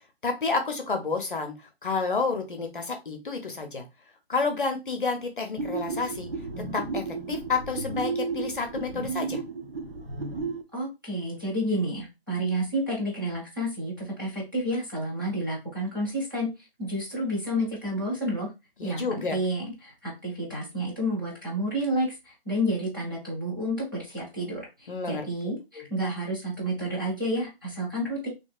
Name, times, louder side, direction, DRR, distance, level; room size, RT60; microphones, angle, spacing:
voice 1, 0.2-3.9 4.3-6.3 6.7-9.4 18.8-19.4 24.9-25.3 25.8-25.9, left 4 dB, 55° left, 5 dB, 0.6 m, -30 dB
sound 1, 5.6-10.6, right 4 dB, 65° right, 0.7 m, -33 dB
voice 2, 10.7-16.5 16.8-18.5 18.8-28.3, equal, 20° right, -6 dB, 0.8 m, -30 dB
2.7 x 2.6 x 2.2 m, 0.24 s
hypercardioid pair, 180°, 31 cm